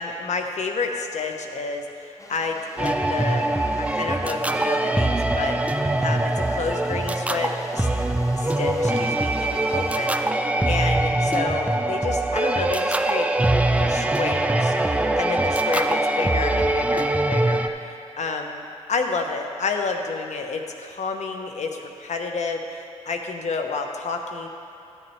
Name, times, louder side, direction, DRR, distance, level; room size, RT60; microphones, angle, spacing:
voice 1, 0.0-7.9 8.3-13.3 13.8-18.6 18.9-22.6 23.1-24.5, left 4 dB, 70° left, 4 dB, 0.9 m, -30 dB
sound 1, 2.2-10.2, left 2 dB, 25° left, 0.7 m, -45 dB
sound 2, 2.8-17.7, right 2 dB, 10° right, 0.5 m, -23 dB
13.0 x 9.0 x 3.2 m, 2.9 s
cardioid pair, 60°, 12 cm